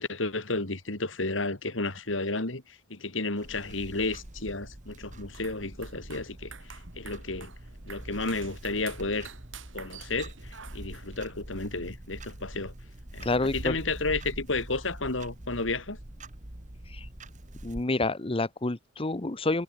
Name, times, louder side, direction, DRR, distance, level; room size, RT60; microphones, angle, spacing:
voice 1, 0.0-7.5 7.9-9.3 9.7-12.7 13.1-16.0, left 3 dB, 90° left, 3.4 m, -32 dB
Clock, 3.4-17.9, right 1 dB, 40° right, 2.1 m, -44 dB
sound 1, 5.2-11.2, right 7 dB, 90° right, 7.5 m, -49 dB
voice 2, 13.2-13.8 16.9-17.1 17.6-19.6, left 2 dB, 30° left, 1.0 m, -28 dB
head